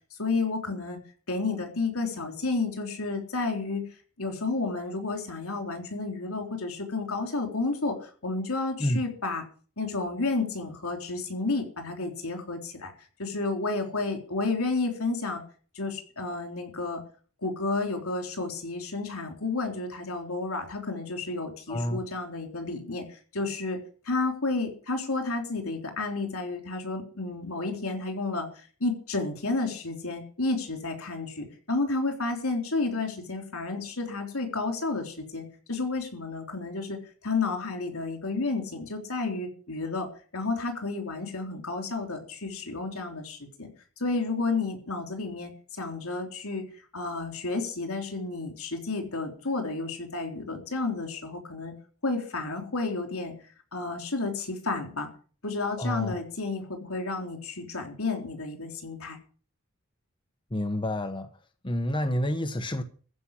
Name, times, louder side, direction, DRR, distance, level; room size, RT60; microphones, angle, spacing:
voice 1, 0.2-1.0 1.3-3.8 4.2-9.4 9.8-12.9 13.2-15.4 15.7-17.0 17.4-23.8 24.1-43.7 44.0-46.6 46.9-51.7 52.0-53.3 53.7-55.1 55.4-59.2, left 3 dB, 80° left, 3.6 m, -31 dB
voice 2, 21.7-22.0 55.8-56.2 60.5-61.3 61.6-62.8, left 1 dB, 25° left, 1.1 m, -28 dB
14.5 x 5.8 x 9.9 m
head